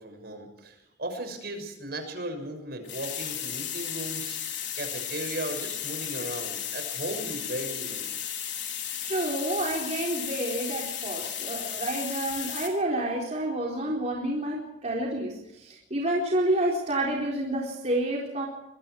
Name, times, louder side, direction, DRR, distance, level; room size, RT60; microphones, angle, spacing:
voice 1, 0.0-8.1, right 1 dB, 60° right, 6 dB, 6.4 m, -37 dB
sound 1, 2.8-12.7, left 10 dB, 70° left, 4.5 m, -34 dB
voice 2, 9.0-18.5, right 1 dB, 40° right, -3 dB, 4.2 m, -29 dB
26.0 x 22.0 x 4.7 m, 0.87 s
head